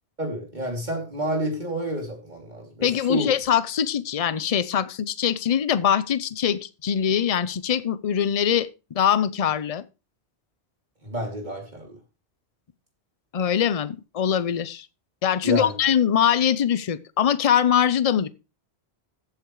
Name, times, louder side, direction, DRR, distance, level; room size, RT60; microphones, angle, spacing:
voice 1, 0.2-3.3 11.0-12.0 15.4-15.7, right 1 dB, 45° right, 3.1 m, -29 dB
voice 2, 2.8-9.8 13.3-14.9 15.2-18.3, left 9 dB, 40° left, 0.6 m, -23 dB
14.5 x 8.4 x 3.2 m
omnidirectional pair, 1.1 m